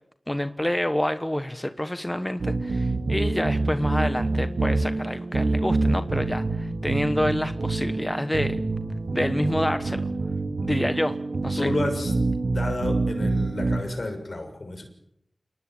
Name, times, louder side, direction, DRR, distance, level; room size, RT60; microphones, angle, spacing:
voice 1, 0.3-8.6 9.1-10.1 10.6-11.2 11.4-11.7, left 1 dB, 15° left, 10 dB, 1.2 m, -28 dB
sound 1, 2.4-13.8, right 3 dB, 80° right, 2.9 m, -26 dB
voice 2, 11.6-12.1 12.5-14.8, left 2 dB, 60° left, 6 dB, 6.7 m, -30 dB
28.5 x 19.5 x 9.2 m, 0.77 s
wide cardioid pair, 70°, 0 cm